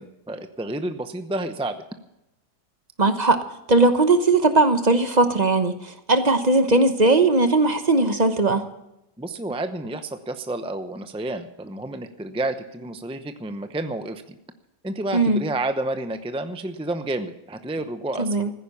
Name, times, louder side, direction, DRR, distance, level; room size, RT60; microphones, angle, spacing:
voice 1, 0.0-1.8 9.2-14.4 14.8-18.4, right 2 dB, 10° right, 8 dB, 0.3 m, -30 dB
voice 2, 3.0-3.4 3.7-8.6 15.1-15.4 18.2-18.5, right 2 dB, 30° right, 8 dB, 0.9 m, -19 dB
15.0 x 10.0 x 7.1 m, 0.88 s
omnidirectional pair, 1.7 m